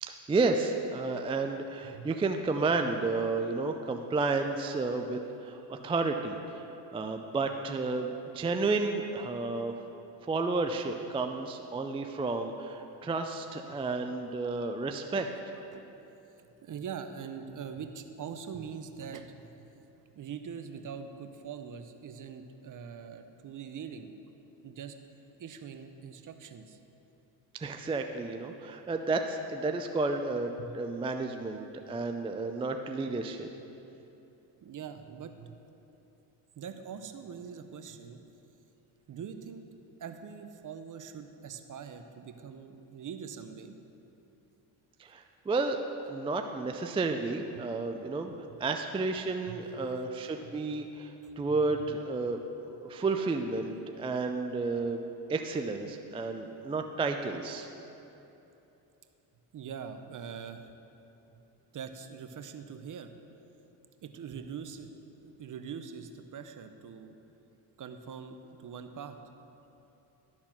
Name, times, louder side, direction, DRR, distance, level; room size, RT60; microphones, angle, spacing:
voice 1, 0.0-9.8 10.2-15.3 27.6-33.5 45.0-45.8 46.1-52.4 52.7-55.0 55.3-57.7, right 3 dB, 15° right, 5 dB, 0.3 m, -32 dB
voice 2, 15.5-15.9 16.4-19.9 20.1-24.1 24.6-25.0 25.4-26.8 30.6-30.7 34.6-35.6 36.6-38.2 39.1-39.6 40.0-43.8 47.5-47.7 48.5-48.6 49.4-49.6 50.4-50.5 51.2-51.9 59.5-60.7 61.3-61.4 61.7-63.1 64.0-67.1 67.8-69.2, right 7 dB, 40° right, 8 dB, 0.7 m, -43 dB
12.0 x 4.3 x 5.9 m, 3.0 s
supercardioid pair, 70°, 49 cm